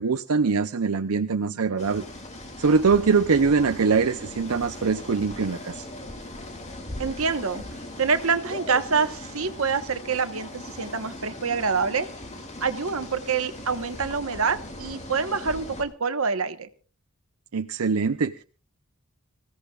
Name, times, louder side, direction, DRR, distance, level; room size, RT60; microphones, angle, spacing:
voice 1, 0.0-2.1 2.6-5.9 17.5-18.4, right 5 dB, 90° right, 7 dB, 0.6 m, -23 dB
sound 1, 1.8-15.8, left 1 dB, 30° left, 2.5 m, -39 dB
voice 2, 7.0-7.6 8.0-12.1 12.6-16.7, right 5 dB, 70° right, 10 dB, 1.3 m, -26 dB
25.5 x 16.0 x 2.4 m, 0.35 s
head